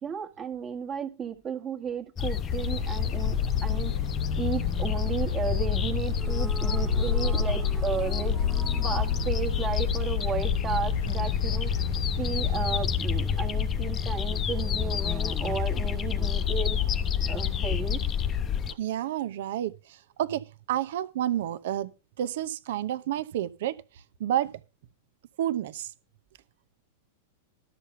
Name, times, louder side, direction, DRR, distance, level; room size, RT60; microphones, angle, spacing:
voice 1, 0.0-4.1 4.4-11.7 12.2-17.0 17.3-18.0, right 7 dB, 25° right, 1.5 m, -34 dB
sound 1, 2.2-18.7, left 8 dB, 25° left, 0.8 m, -28 dB
sound 2, 2.5-12.8, left 6 dB, 75° left, 0.5 m, -31 dB
sound 3, 6.1-10.5, right 1 dB, 5° right, 0.8 m, -44 dB
voice 2, 18.7-21.9 22.2-23.8 24.2-24.5 25.4-25.9, right 11 dB, 60° right, 0.8 m, -30 dB
12.5 x 7.0 x 5.7 m
figure-of-eight pair, 100°, 0 cm